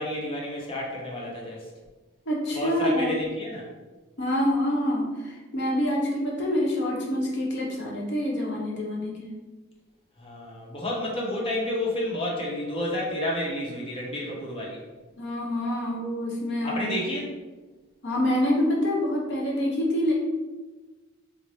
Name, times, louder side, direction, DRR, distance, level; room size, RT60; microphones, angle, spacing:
voice 1, 0.0-1.7 2.5-3.7 10.2-14.8 16.6-17.3, left 1 dB, 30° left, -4 dB, 0.8 m, -30 dB
voice 2, 2.3-3.2 4.2-9.4 15.2-17.0 18.0-20.1, left 1 dB, 60° left, -2 dB, 0.9 m, -26 dB
3.2 x 2.1 x 4.0 m, 1.2 s
head